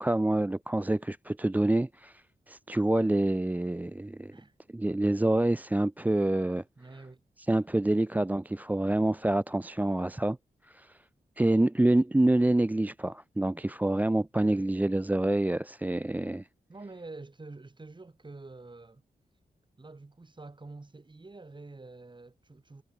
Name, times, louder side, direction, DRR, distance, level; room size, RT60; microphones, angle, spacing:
voice 1, 0.0-4.4 4.7-6.6 7.5-10.4 10.6-11.0 11.4-16.5, right 1 dB, 10° right, 0.4 m, -27 dB
voice 2, 6.8-7.2 14.5-14.6 16.7-19.0 19.8-22.8, right 3 dB, 30° right, 3.2 m, -47 dB
wide cardioid pair, 90°, 17 cm